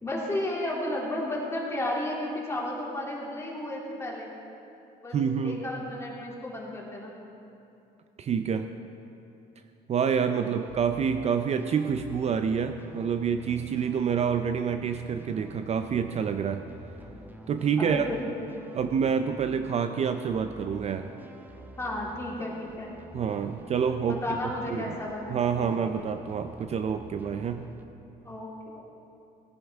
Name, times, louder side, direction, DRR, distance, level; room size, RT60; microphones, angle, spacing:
voice 1, 0.0-4.3 5.0-5.2 5.4-7.1 10.5-10.6 17.8-18.2 21.8-22.9 24.1-25.7 28.2-28.8, left 1 dB, 15° left, -4 dB, 2.7 m, -33 dB
voice 2, 5.1-5.6 8.2-8.7 9.9-16.6 17.5-18.1 18.7-21.1 23.1-24.2 24.7-25.0 25.3-27.7, right 7 dB, 40° right, 8 dB, 0.5 m, -27 dB
sound 1, 10.4-27.9, right 1 dB, 10° right, 0.8 m, -48 dB
18.0 x 10.5 x 3.5 m, 2.8 s
cardioid pair, 110°, 17 cm